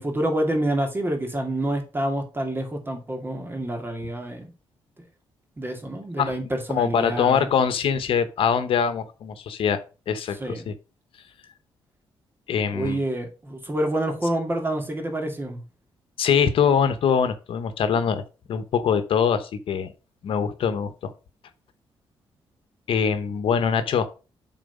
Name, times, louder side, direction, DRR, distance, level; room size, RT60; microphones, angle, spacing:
voice 1, 0.0-4.5 5.6-7.5 10.4-10.6 12.7-15.6, right 1 dB, 25° right, 3 dB, 2.3 m, -27 dB
voice 2, 6.7-9.8 10.1-10.7 12.5-13.0 16.2-18.2 18.5-19.9 20.2-21.1 22.9-24.1, left 7 dB, 70° left, 10 dB, 1.0 m, -23 dB
7.5 x 4.0 x 5.4 m, 0.32 s
cardioid pair, 100°, 10 cm